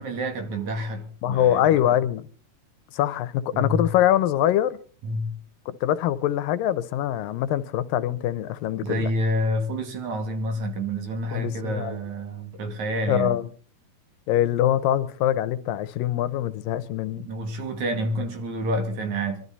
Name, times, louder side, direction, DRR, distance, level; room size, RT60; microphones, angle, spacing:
voice 1, 0.0-1.7 3.5-3.9 5.0-5.3 8.8-13.4 17.1-19.4, equal, 60° right, 3.8 m, -28 dB
voice 2, 1.2-2.3 2.9-4.8 5.8-9.1 11.3-12.0 13.1-13.5 14.3-17.3, left 12 dB, 90° left, 2.6 m, -23 dB
24.5 x 12.5 x 4.1 m
omnidirectional pair, 3.9 m